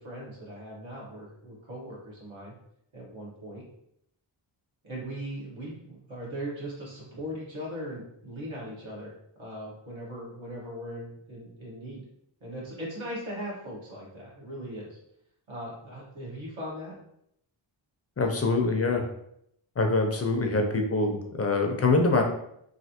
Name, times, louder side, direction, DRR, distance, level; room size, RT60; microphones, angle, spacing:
voice 1, 0.0-2.5 2.9-3.6 4.8-9.1 9.4-12.0 12.4-15.0 15.5-16.9, equal, 70° right, -5 dB, 1.3 m, -39 dB
voice 2, 18.2-19.0 19.8-22.2, left 3 dB, 30° left, 3 dB, 0.5 m, -24 dB
3.2 x 2.6 x 2.8 m, 0.74 s
wide cardioid pair, 105°, 48 cm